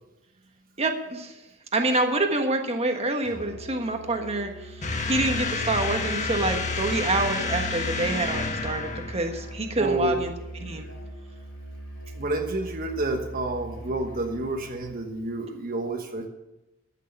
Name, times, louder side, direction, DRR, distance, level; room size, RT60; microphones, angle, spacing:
voice 1, 0.8-1.3 1.7-4.5 5.1-10.3 10.6-10.9, right 2 dB, 30° right, 4 dB, 1.4 m, -26 dB
Musical instrument, 3.2-15.1, right 1 dB, 75° left, 5.3 m, -41 dB
sound 1, 4.8-9.5, left 3 dB, 40° left, 1.3 m, -30 dB
voice 2, 9.8-10.2 12.1-16.3, right 2 dB, 45° right, 3 dB, 1.3 m, -29 dB
14.0 x 6.6 x 9.0 m, 1.0 s
head